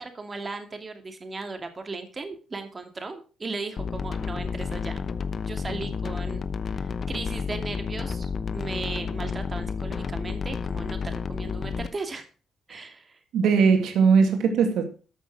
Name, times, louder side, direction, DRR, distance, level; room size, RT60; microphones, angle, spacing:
voice 1, 0.0-5.0 5.4-6.4 6.7-12.3 12.7-13.2, right 3 dB, 30° right, 2.4 m, -37 dB
sound 1, 3.8-11.9, left 5 dB, 45° left, 0.9 m, -31 dB
voice 2, 13.3-14.9, right 5 dB, 80° right, 1.9 m, -20 dB
13.5 x 6.3 x 6.3 m
cardioid pair, 90°, 0 cm